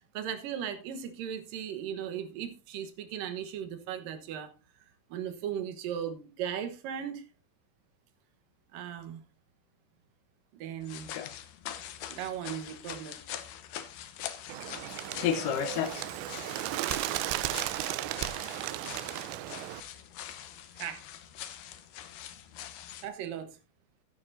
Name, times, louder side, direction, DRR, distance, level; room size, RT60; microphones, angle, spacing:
voice 1, 0.0-4.5 5.1-7.3 8.7-9.2 10.5-11.1 12.1-13.2 20.8-21.0 23.0-23.6, right 9 dB, 65° right, 2.5 m, -37 dB
sound 1, 10.8-23.1, left 10 dB, 70° left, 2.1 m, -39 dB
Bird, 14.5-19.8, right 15 dB, 85° right, 2.9 m, -35 dB
voice 2, 15.3-18.0, left 1 dB, 30° left, 3.4 m, -57 dB
13.5 x 10.5 x 2.6 m
omnidirectional pair, 4.9 m